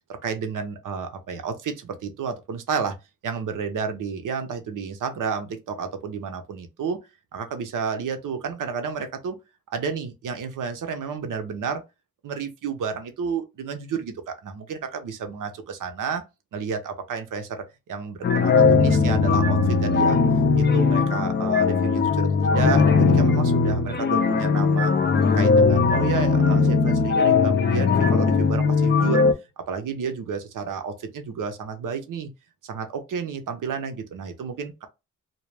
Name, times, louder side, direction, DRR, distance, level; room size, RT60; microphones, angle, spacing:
voice 1, 0.1-3.0 3.2-7.0 7.3-9.4 9.7-11.8 12.2-16.2 16.5-20.2 20.6-24.9 25.4-29.3 29.6-32.3 32.6-34.9, right 6 dB, 65° right, 0.6 m, -31 dB
sound 1, 18.2-29.3, left 4 dB, 30° left, 0.4 m, -19 dB
2.2 x 2.0 x 3.3 m
cardioid pair, 60°, 33 cm